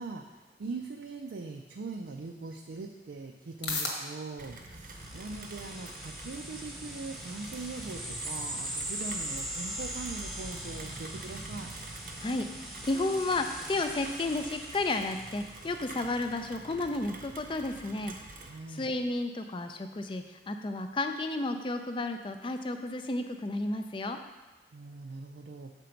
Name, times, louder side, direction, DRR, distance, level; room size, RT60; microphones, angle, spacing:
voice 1, 0.0-11.7 18.5-18.9 24.7-25.7, right 3 dB, 80° right, 3 dB, 0.4 m, -41 dB
sound 1, 2.2-19.1, left 3 dB, 85° left, 1.3 m, -47 dB
Rain, 4.4-18.6, right 2 dB, 50° right, 0.7 m, -46 dB
sound 2, 4.9-16.0, right 1 dB, ahead, 0.8 m, -41 dB
voice 2, 12.2-18.1 18.7-24.2, left 2 dB, 30° left, 7 dB, 0.4 m, -32 dB
6.9 x 4.4 x 5.1 m, 1.2 s
head